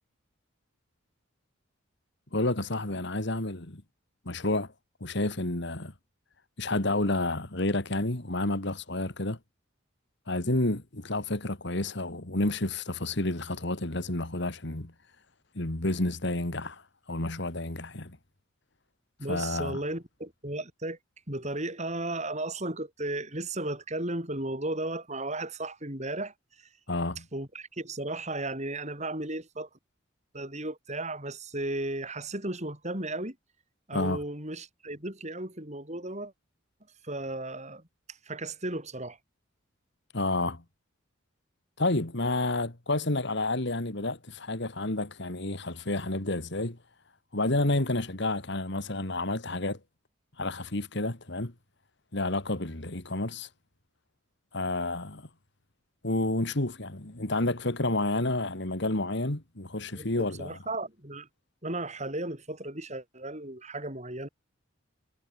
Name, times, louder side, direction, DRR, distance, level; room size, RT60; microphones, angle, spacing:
voice 1, 2.3-3.8 4.3-4.7 5.0-5.9 6.6-9.4 10.3-14.9 15.5-16.8 17.1-18.2 19.3-19.8 26.9-27.2 33.9-34.2 40.1-40.6 41.8-46.8 47.3-49.8 50.4-51.5 52.1-53.5 54.5-55.3 56.0-60.6, left 2 dB, 55° left, 2.2 m, -30 dB
voice 2, 19.2-21.0 21.3-26.7 27.3-29.7 30.3-33.4 33.9-36.3 37.0-37.8 38.1-39.2 59.9-61.3 61.6-64.3, right 2 dB, 35° right, 6.0 m, -35 dB
head